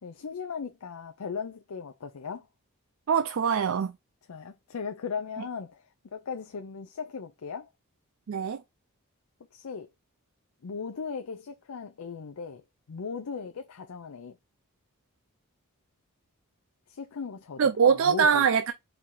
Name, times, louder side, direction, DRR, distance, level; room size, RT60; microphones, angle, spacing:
voice 1, 0.0-2.5 4.3-5.9 6.1-7.7 9.5-9.9 10.6-12.6 12.9-14.4 16.9-18.5, left 5 dB, 80° left, 0.5 m, -37 dB
voice 2, 3.1-3.9 8.3-8.6 17.6-18.7, right 6 dB, 60° right, 0.4 m, -23 dB
4.6 x 2.7 x 3.7 m
head